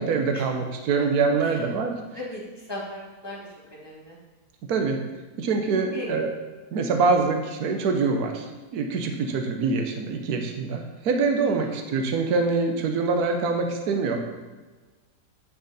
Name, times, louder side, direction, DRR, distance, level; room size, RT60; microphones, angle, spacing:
voice 1, 0.0-1.9 4.7-5.0 5.4-6.3 6.7-14.2, right 4 dB, 70° right, 4 dB, 1.4 m, -24 dB
voice 2, 2.1-4.2 5.9-6.1 11.6-11.7, left 1 dB, 15° left, -6 dB, 2.3 m, -37 dB
9.8 x 6.2 x 4.2 m, 1.3 s
omnidirectional pair, 1.8 m